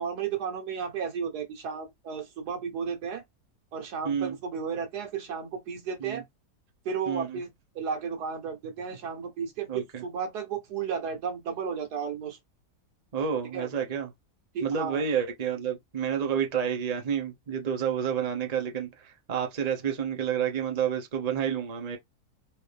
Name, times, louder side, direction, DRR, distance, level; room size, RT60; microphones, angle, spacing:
voice 1, 0.0-3.2 3.7-6.2 6.9-7.5 7.8-12.4 13.5-13.7 14.5-15.0, right 6 dB, 85° right, 1.6 m, -33 dB
voice 2, 4.0-4.4 6.0-6.2 7.1-7.4 9.7-10.0 13.1-14.1 14.6-22.0, right 8 dB, 30° right, 0.8 m, -29 dB
4.3 x 2.7 x 3.3 m
omnidirectional pair, 1.7 m